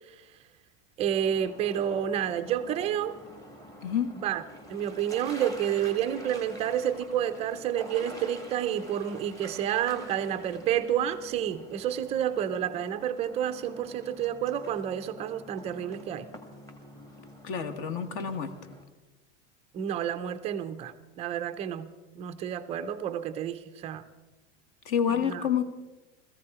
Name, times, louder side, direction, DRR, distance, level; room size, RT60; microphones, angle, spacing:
voice 1, 1.0-3.2 4.1-4.4 4.7-16.3 19.7-21.9 22.2-24.0 25.2-25.5, right 10 dB, 20° right, 10 dB, 0.5 m, -30 dB
sound 1, 1.1-18.8, equal, 10° left, 1.5 m, -47 dB
voice 2, 17.4-18.5 24.8-25.6, left 8 dB, 45° left, 10 dB, 1.3 m, -28 dB
17.5 x 14.5 x 4.8 m, 1.1 s
supercardioid pair, 170°, 36 cm